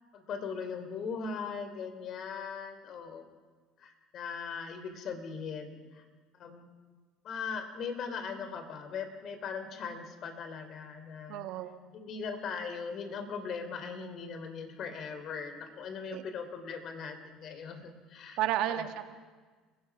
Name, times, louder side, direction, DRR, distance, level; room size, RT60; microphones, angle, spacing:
voice 1, 0.1-3.2 3.8-6.0 6.4-6.7 7.2-11.4 11.9-18.4 18.7-18.9, left 5 dB, 55° left, 7 dB, 3.3 m, -39 dB
voice 2, 11.3-11.8 16.1-16.2 18.4-19.0, right 12 dB, 70° right, 9 dB, 1.4 m, -32 dB
30.0 x 16.5 x 6.0 m, 1.4 s
hypercardioid pair, 70°, 0 cm